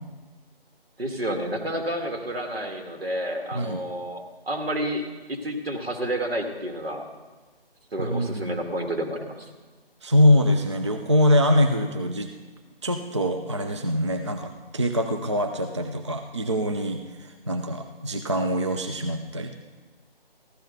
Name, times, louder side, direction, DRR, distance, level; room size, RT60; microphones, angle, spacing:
voice 1, 1.0-5.0 5.3-7.1 7.9-9.5, right 1 dB, 75° right, 3 dB, 2.2 m, -30 dB
voice 2, 8.0-8.6 10.0-12.3 12.8-19.5, left 1 dB, 30° right, 6 dB, 0.5 m, -23 dB
15.0 x 12.5 x 4.0 m, 1.3 s
figure-of-eight pair, 160°, 30 cm